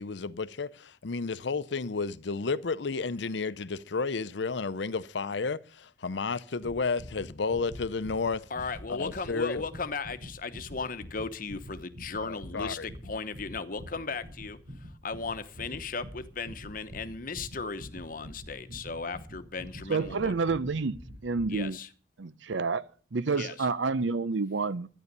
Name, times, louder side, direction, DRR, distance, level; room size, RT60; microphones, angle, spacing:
voice 1, 0.0-8.5 8.9-9.6 12.2-12.9, left 4 dB, 70° left, 0.7 m, -32 dB
sound 1, 6.6-21.7, equal, 60° right, 4.0 m, -46 dB
voice 2, 8.5-20.3 21.5-21.9 23.3-23.7, left 4 dB, 50° left, 1.0 m, -37 dB
voice 3, 19.9-21.0 21.2-21.8 22.2-24.9, right 4 dB, 80° right, 0.7 m, -29 dB
12.5 x 10.0 x 6.7 m
head